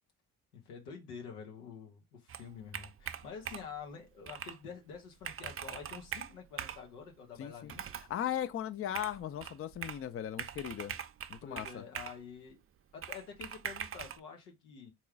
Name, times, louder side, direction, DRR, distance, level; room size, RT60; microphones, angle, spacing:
voice 1, 0.5-7.8 11.4-12.6 12.9-14.9, left 6 dB, 85° left, 1.0 m, -48 dB
Computer keyboard, 2.3-3.8 4.3-4.6 4.9-5.0 5.2-6.9 7.7-8.1 8.9-10.1 10.4-12.2 13.0-14.2, right 8 dB, 30° right, 0.5 m, -42 dB
voice 2, 7.4-7.7 8.1-10.9 11.3-11.8, left 10 dB, 30° left, 0.5 m, -37 dB
3.7 x 3.0 x 4.6 m
hypercardioid pair, 40°, 45 cm